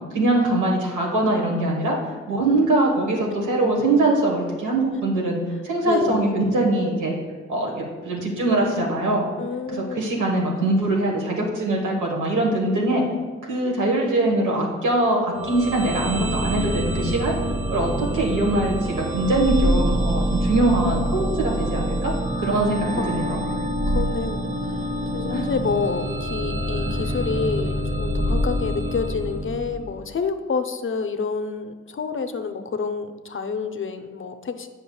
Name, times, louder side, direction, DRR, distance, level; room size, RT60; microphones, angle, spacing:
voice 1, 0.0-2.0 2.3-7.2 7.5-9.3 9.7-13.0 13.5-17.3 17.7-22.1 22.4-23.4 25.3-25.4, right 2 dB, 85° right, -1 dB, 1.4 m, -22 dB
voice 2, 5.8-6.3 9.4-10.1 19.3-20.0 22.9-23.6 23.9-34.7, left 5 dB, 45° left, 8 dB, 0.6 m, -29 dB
sound 1, 15.3-30.1, equal, 25° right, 0.7 m, -26 dB
8.2 x 5.8 x 2.3 m, 1.4 s
supercardioid pair, 45°, 30 cm